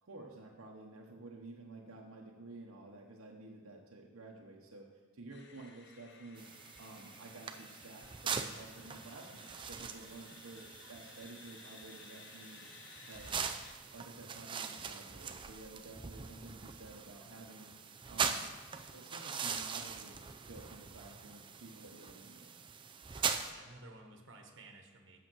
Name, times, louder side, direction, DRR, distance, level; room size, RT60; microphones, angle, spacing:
voice 1, 0.0-4.9 5.1-6.5 6.8-12.6 13.0-13.3 13.9-17.7 18.1-18.5 18.9-22.5, right 2 dB, 80° right, -1 dB, 1.0 m, -52 dB
sound 1, 5.3-13.7, left 5 dB, 55° left, 0.8 m, -57 dB
sound 2, 6.4-23.5, right 6 dB, 20° right, 0.4 m, -42 dB
voice 2, 23.1-25.3, right 2 dB, 60° right, 3 dB, 1.3 m, -55 dB
8.8 x 7.1 x 6.2 m, 1.5 s
head